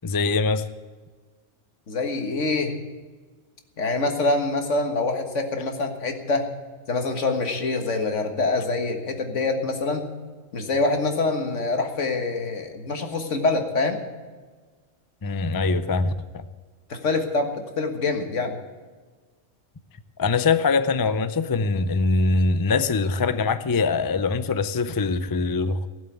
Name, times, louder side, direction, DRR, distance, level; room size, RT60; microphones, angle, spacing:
voice 1, 0.0-0.7 15.2-16.4 20.2-25.9, left 4 dB, 35° left, 12 dB, 0.3 m, -23 dB
voice 2, 1.9-2.7 3.8-6.5 6.9-10.1 10.5-14.0 16.9-18.5, left 3 dB, 70° left, 5 dB, 1.9 m, -25 dB
16.5 x 7.4 x 9.0 m, 1.4 s
omnidirectional pair, 1.3 m